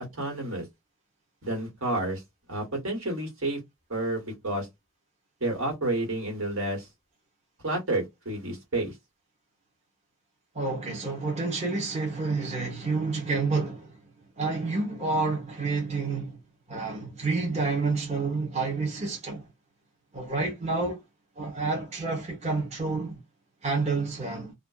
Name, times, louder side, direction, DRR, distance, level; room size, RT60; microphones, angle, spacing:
voice 1, 0.1-0.6 1.4-2.2 2.5-3.6 3.9-4.7 5.4-6.9 7.6-8.9, right 2 dB, 75° right, 1.5 m, -30 dB
voice 2, 10.5-13.9 14.4-16.4 16.7-19.4 20.1-21.0 21.4-23.2 23.6-24.5, right 3 dB, 30° right, 0.8 m, -29 dB
2.5 x 2.2 x 2.3 m
head